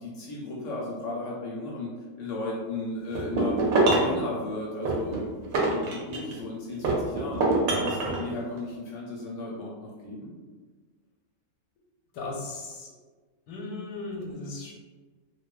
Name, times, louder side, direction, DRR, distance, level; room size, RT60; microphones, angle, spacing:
voice 1, 0.0-3.6 3.9-7.5 7.8-10.3, left 2 dB, 70° left, -4 dB, 0.8 m, -35 dB
sound 1, 3.1-4.2 4.9-6.4 6.8-8.2, right 2 dB, 75° right, 1.0 m, -24 dB
voice 2, 12.1-12.9 13.5-14.7, left 3 dB, 90° left, 0 dB, 1.1 m, -37 dB
2.6 x 2.3 x 2.3 m, 1.4 s
omnidirectional pair, 1.6 m